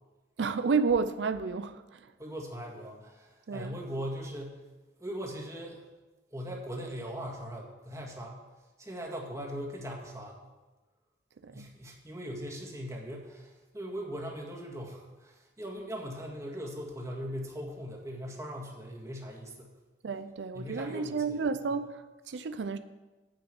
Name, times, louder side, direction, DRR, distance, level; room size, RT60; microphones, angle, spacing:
voice 1, 0.4-2.1 3.5-3.8 11.4-11.7 20.0-22.8, right 5 dB, 90° right, 0.5 m, -31 dB
voice 2, 2.2-4.6 5.0-5.8 6.3-8.4 8.8-10.4 11.5-19.7 20.5-21.4, equal, 20° right, 1.9 m, -40 dB
9.3 x 6.2 x 7.6 m
head